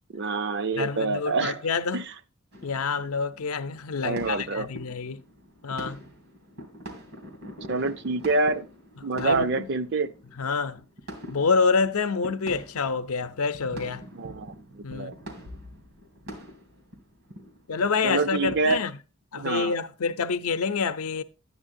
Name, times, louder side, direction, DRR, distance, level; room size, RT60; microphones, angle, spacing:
voice 1, 0.1-1.6 1.9-2.1 4.0-4.7 7.7-8.7 9.0-10.1 14.1-15.1 18.0-18.8 19.3-19.8, right 3 dB, 55° right, 0.5 m, -27 dB
voice 2, 0.8-2.0 2.6-5.2 5.6-6.0 9.1-9.7 10.4-10.8 11.3-14.0 14.8-15.1 17.7-18.9 19.3-21.2, left 5 dB, 90° left, 0.6 m, -27 dB
sound 1, 2.5-18.8, equal, 75° right, 2.6 m, -44 dB
10.5 x 9.5 x 2.6 m
head